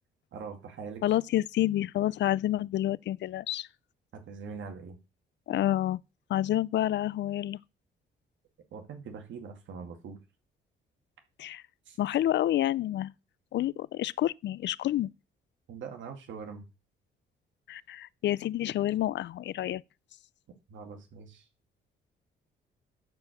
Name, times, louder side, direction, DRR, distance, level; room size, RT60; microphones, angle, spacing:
voice 1, 0.3-1.0 4.1-5.0 8.7-10.2 11.9-12.0 15.7-16.7 20.7-21.5, right 5 dB, 70° right, 2.2 m, -42 dB
voice 2, 1.0-3.7 5.5-6.0 6.3-7.6 11.4-11.6 12.0-13.1 13.5-15.1 17.7-19.8, left 13 dB, 65° left, 0.5 m, -28 dB
12.0 x 4.7 x 6.5 m
cardioid pair, 90°, 20 cm